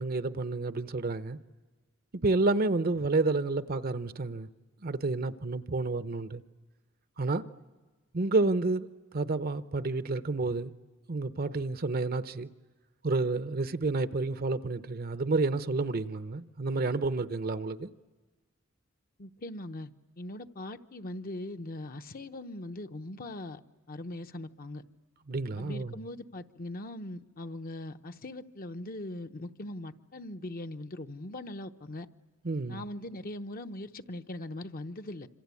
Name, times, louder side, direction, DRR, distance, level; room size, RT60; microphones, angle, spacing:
voice 1, 0.0-1.4 2.2-4.5 4.8-6.4 7.2-7.4 8.1-8.9 9.1-10.7 11.1-12.5 13.0-17.9 25.3-26.0 32.4-32.8, right 3 dB, 45° right, 0.8 m, -30 dB
voice 2, 19.2-19.9 20.2-23.6 23.9-24.8 25.6-32.1 32.7-35.3, left 1 dB, 45° left, 0.9 m, -40 dB
26.5 x 26.0 x 8.4 m
head